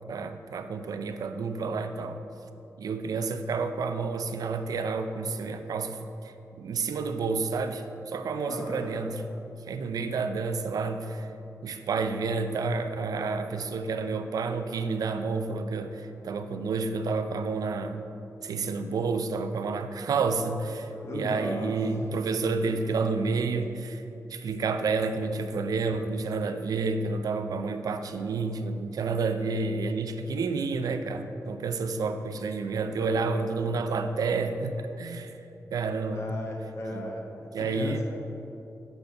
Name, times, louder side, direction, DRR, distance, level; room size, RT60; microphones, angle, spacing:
voice 1, 0.1-2.2 2.8-9.2 9.7-11.3 11.6-18.0 18.4-24.0 24.3-35.4 35.7-36.2 36.9-37.1 37.5-38.0, right 4 dB, 85° right, 8 dB, 0.4 m, -30 dB
voice 2, 8.4-9.0 20.8-21.7 36.1-38.0, left 1 dB, 50° left, 0 dB, 1.0 m, -36 dB
6.7 x 4.1 x 5.6 m, 2.9 s
wide cardioid pair, 150°, 6 cm